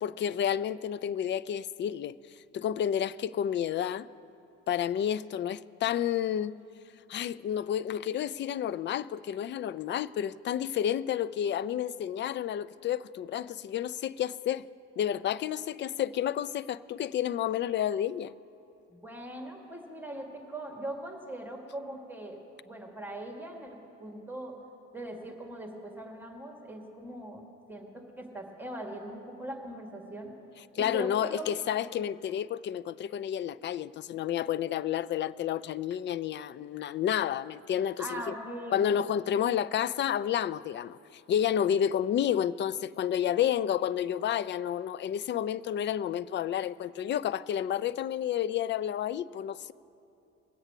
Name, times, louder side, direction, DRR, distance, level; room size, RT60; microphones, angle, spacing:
voice 1, 0.0-2.1 2.5-4.1 4.7-6.5 7.1-14.7 15.0-18.3 30.8-38.3 38.7-49.7, left 10 dB, 30° left, 0.4 m, -30 dB
voice 2, 18.9-22.4 22.6-24.5 24.9-27.4 27.7-30.3 30.8-31.5 38.0-38.8, right 1 dB, 5° right, 2.0 m, -41 dB
21.0 x 8.0 x 6.1 m
hypercardioid pair, 55°, 38 cm